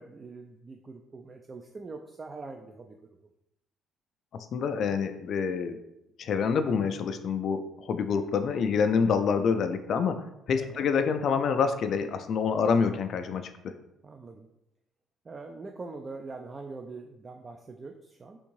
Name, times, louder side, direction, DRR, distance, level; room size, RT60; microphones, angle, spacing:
voice 1, 0.0-3.0 10.6-10.9 12.6-12.7 14.0-14.5 15.2-18.4, right 3 dB, 35° right, 4 dB, 0.3 m, -43 dB
voice 2, 4.5-5.8 6.2-10.2 10.5-13.7, left 6 dB, 60° left, 8 dB, 0.3 m, -27 dB
3.5 x 2.6 x 3.1 m, 0.84 s
supercardioid pair, 60°, 0 cm